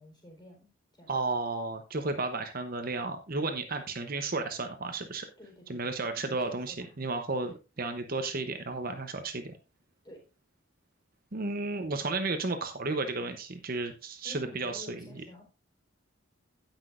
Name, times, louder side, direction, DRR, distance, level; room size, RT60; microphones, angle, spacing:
voice 1, 0.0-1.1 5.4-7.5 10.0-10.2 14.2-15.4, left 1 dB, 20° left, 0 dB, 4.0 m, -51 dB
voice 2, 1.1-5.3 5.7-9.6 11.3-15.1, right 3 dB, 40° right, 7 dB, 0.8 m, -33 dB
17.0 x 6.0 x 2.5 m, 0.30 s
head